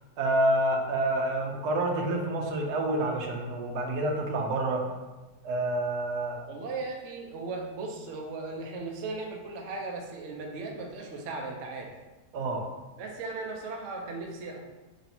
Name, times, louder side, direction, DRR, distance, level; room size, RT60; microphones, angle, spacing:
voice 1, 0.2-4.9 5.4-6.4 12.3-12.6, right 1 dB, 80° right, 1 dB, 1.1 m, -28 dB
voice 2, 6.5-11.9 13.0-14.6, right 3 dB, 65° right, 1 dB, 0.8 m, -37 dB
3.1 x 2.7 x 4.1 m, 1.2 s
omnidirectional pair, 1.7 m